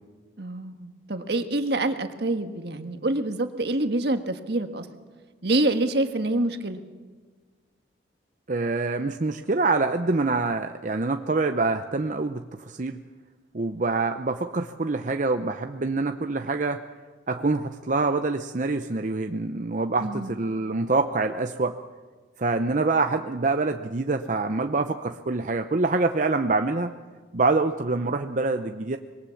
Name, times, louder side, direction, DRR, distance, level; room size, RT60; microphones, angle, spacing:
voice 1, 0.4-4.9 5.4-6.8 20.0-20.4, right 2 dB, 70° right, 7 dB, 1.6 m, -26 dB
voice 2, 8.5-13.0 13.5-16.8 17.3-21.8 22.4-26.9 27.3-29.0, right 3 dB, 45° right, 7 dB, 0.7 m, -25 dB
25.5 x 22.0 x 7.1 m, 1.4 s
head